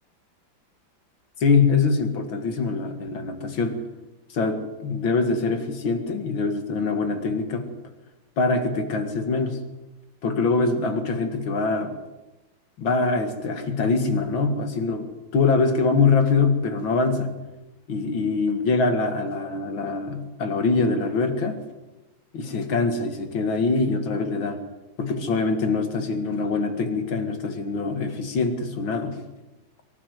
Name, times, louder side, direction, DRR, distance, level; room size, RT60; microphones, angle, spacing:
voice 1, 1.4-3.8 4.3-7.7 8.4-9.6 10.2-11.9 12.8-15.1 15.3-17.3 17.9-21.6 22.3-24.6 25.0-29.2, left 4 dB, 90° left, 7 dB, 2.8 m, -24 dB
24.0 x 11.5 x 9.5 m, 1.1 s
omnidirectional pair, 2.1 m